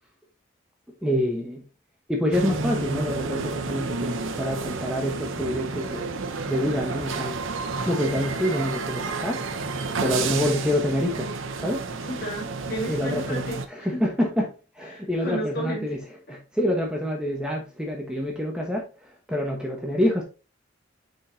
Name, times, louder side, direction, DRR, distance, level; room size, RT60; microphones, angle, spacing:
voice 1, 1.0-1.6 2.1-6.1 6.5-7.4 7.8-9.4 10.0-11.3 11.6-11.8 12.9-13.4 13.7-14.5 14.8-16.0 16.3-18.9 19.3-20.2, equal, 5° right, 1.2 m, -26 dB
sound 1, 2.3-13.7, right 3 dB, 75° right, 0.8 m, -31 dB
voice 2, 10.2-10.6 12.1-14.0 14.9-15.9, equal, 55° left, 3.4 m, -33 dB
6.4 x 5.4 x 2.8 m
head